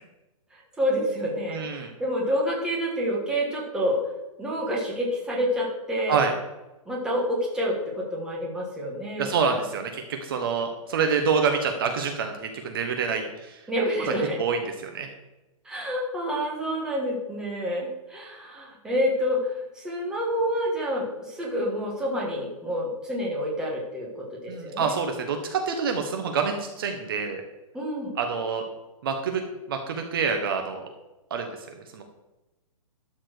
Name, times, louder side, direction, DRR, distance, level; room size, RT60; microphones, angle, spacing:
voice 1, 0.5-4.0 4.4-6.2 6.8-9.3 13.7-14.4 15.6-24.9 27.7-28.1, equal, 5° right, -4 dB, 1.6 m, -28 dB
voice 2, 1.5-1.9 6.1-6.3 9.2-13.7 14.4-15.1 24.5-27.4 28.2-28.6 29.0-30.9 31.3-31.7 31.9-32.0, right 5 dB, 40° right, 5 dB, 1.1 m, -27 dB
12.0 x 4.4 x 6.6 m, 1.0 s
hypercardioid pair, 165°, 18 cm